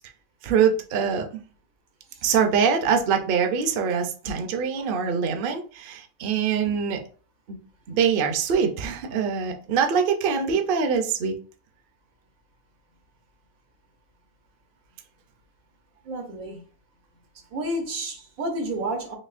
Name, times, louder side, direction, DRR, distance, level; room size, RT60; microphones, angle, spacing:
voice 1, 0.4-1.4 2.2-7.0 7.5-7.6 7.9-11.4, right 6 dB, 55° right, 0.6 m, -24 dB
voice 2, 16.0-16.6 17.5-19.2, right 1 dB, 85° right, 1.4 m, -30 dB
4.2 x 2.7 x 2.4 m
omnidirectional pair, 1.4 m